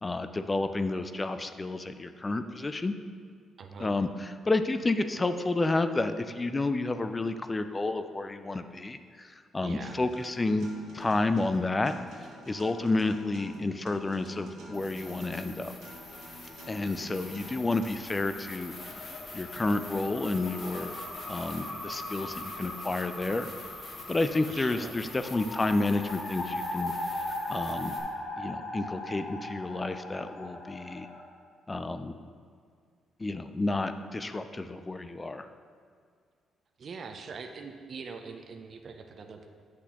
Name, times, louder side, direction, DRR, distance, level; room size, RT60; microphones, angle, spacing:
voice 1, 0.0-2.9 3.8-10.7 10.9-11.9 12.5-15.7 16.7-18.7 19.3-20.9 21.3-23.5 24.1-26.9 27.5-27.9 28.4-31.1 31.7-32.1 33.2-35.5, left 2 dB, 20° left, 10 dB, 0.4 m, -30 dB
voice 2, 3.6-3.9 9.6-10.0 24.5-25.0 36.8-39.5, right 5 dB, 50° right, 6 dB, 0.5 m, -43 dB
Acoustic guitar, 9.9-17.8, right 1 dB, 75° right, 1.6 m, -48 dB
sound 1, 14.7-28.0, left 2 dB, 40° left, 1.0 m, -46 dB
sound 2, 18.0-31.2, left 1 dB, 65° left, 1.2 m, -39 dB
8.1 x 6.0 x 2.9 m, 2.1 s
cardioid pair, 90°, 0 cm